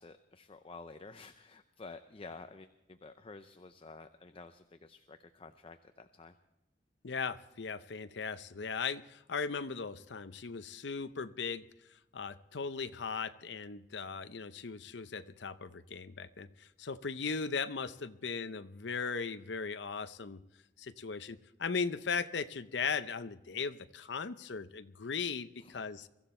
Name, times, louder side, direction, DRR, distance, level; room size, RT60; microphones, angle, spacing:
voice 1, 0.0-6.3 25.6-25.9, left 3 dB, 30° left, 9 dB, 0.6 m, -51 dB
voice 2, 7.0-11.6 12.1-20.4 20.8-26.1, left 5 dB, 70° left, 12 dB, 0.7 m, -38 dB
23.0 x 14.0 x 4.3 m, 0.92 s
head